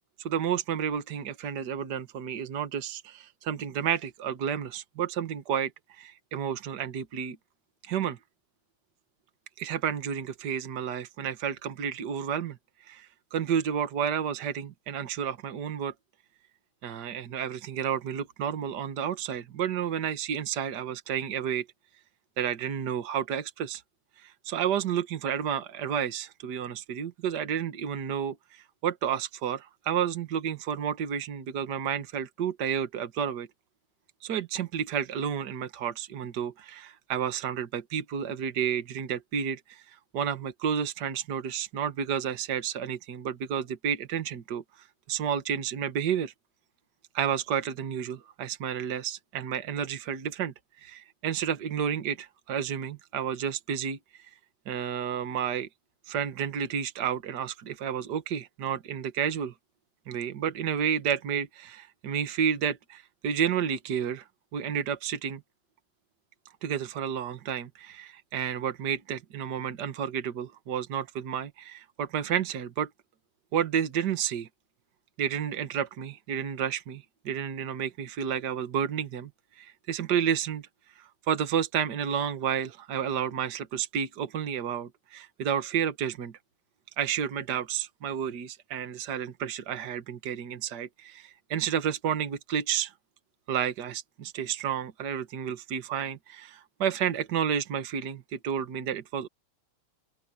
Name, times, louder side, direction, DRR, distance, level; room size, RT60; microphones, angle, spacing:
voice 1, 0.2-5.7 6.0-7.4 7.9-8.2 9.6-12.6 12.9-15.9 16.8-21.6 22.4-23.8 24.2-33.5 34.2-39.8 40.1-44.6 45.1-46.3 47.1-54.0 54.6-55.7 56.1-59.5 60.1-64.2 64.5-65.4 66.6-72.9 73.5-74.5 75.2-79.3 79.6-80.7 81.0-86.4 87.0-92.9 93.5-99.3, right 8 dB, 55° right, 1.1 m, -31 dB
open air
omnidirectional pair, 4.0 m